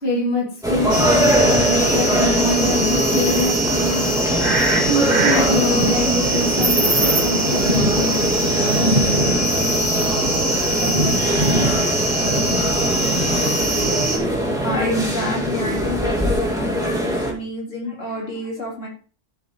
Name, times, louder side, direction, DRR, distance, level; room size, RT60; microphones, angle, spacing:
voice 1, 0.0-4.1 4.8-8.4, left 1 dB, 55° left, -3 dB, 2.9 m, -24 dB
sound 1, 0.6-17.3, right 1 dB, 5° right, 2.3 m, -22 dB
sound 2, 0.9-14.2, right 1 dB, 35° right, 2.1 m, -22 dB
voice 2, 14.6-18.9, left 2 dB, 80° left, -2 dB, 3.5 m, -28 dB
11.5 x 7.8 x 3.1 m, 0.40 s
omnidirectional pair, 1.3 m